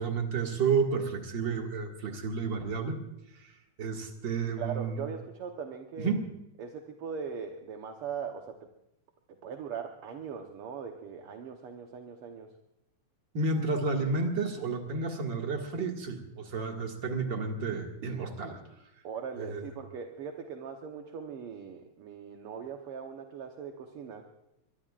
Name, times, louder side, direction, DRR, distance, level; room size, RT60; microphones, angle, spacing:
voice 1, 0.0-3.0 3.4-3.5 3.8-5.0 6.0-6.3 13.3-18.6 19.4-19.6, right 4 dB, 40° right, 2 dB, 2.4 m, -31 dB
voice 2, 4.6-6.1 6.6-8.6 9.3-12.5 19.0-24.2, right 6 dB, 60° right, 3 dB, 1.7 m, -40 dB
23.0 x 22.5 x 2.5 m, 0.86 s
omnidirectional pair, 3.5 m